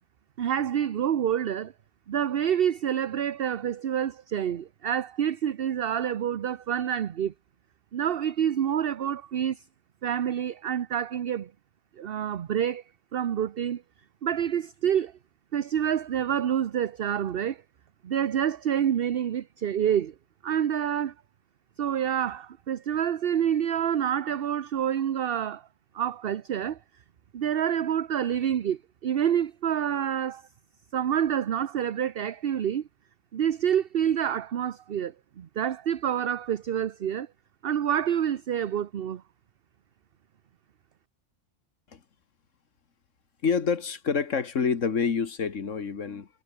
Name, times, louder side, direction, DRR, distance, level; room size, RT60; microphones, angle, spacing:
voice 1, 0.4-1.7 2.1-7.3 7.9-9.6 10.0-11.5 12.0-12.8 13.1-13.8 14.2-15.1 15.5-17.6 18.0-20.1 20.4-21.1 21.8-25.6 25.9-26.8 27.3-30.4 30.9-32.9 33.3-37.3 37.6-39.2, right 9 dB, 55° right, 0.9 m, -27 dB
voice 2, 43.4-46.3, left 6 dB, 80° left, 2.0 m, -27 dB
omnidirectional pair, 1.3 m